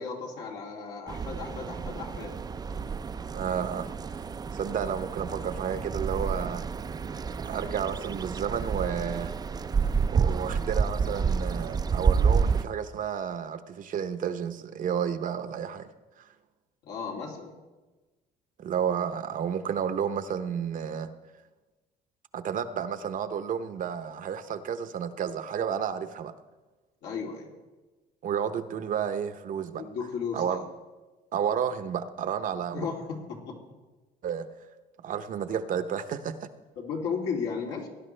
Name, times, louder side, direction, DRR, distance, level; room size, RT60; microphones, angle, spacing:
voice 1, 0.0-2.3 16.8-17.5 27.0-27.5 29.7-30.6 32.7-33.6 36.8-37.9, left 5 dB, 85° left, -2 dB, 2.9 m, -35 dB
sound 1, 1.1-12.6, right 5 dB, 25° right, 0.4 m, -29 dB
voice 2, 3.3-3.9 4.5-6.6 7.4-9.4 10.1-15.9 16.2-16.3 18.6-21.1 22.3-26.3 28.2-29.8 30.3-30.6 31.3-32.9 34.2-34.5 35.0-36.5, right 8 dB, 55° right, 11 dB, 0.8 m, -31 dB
18.0 x 11.0 x 3.3 m, 1.2 s
cardioid pair, 110°, 17 cm